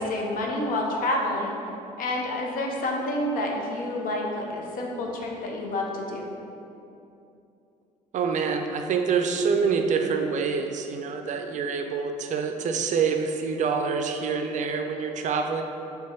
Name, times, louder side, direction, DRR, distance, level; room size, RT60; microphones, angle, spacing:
voice 1, 0.0-1.6 2.0-6.2, left 1 dB, 60° left, 0 dB, 0.7 m, -28 dB
voice 2, 8.1-15.6, right 5 dB, 50° right, 5 dB, 0.4 m, -26 dB
3.4 x 2.9 x 4.3 m, 2.8 s
supercardioid pair, 65°, 16 cm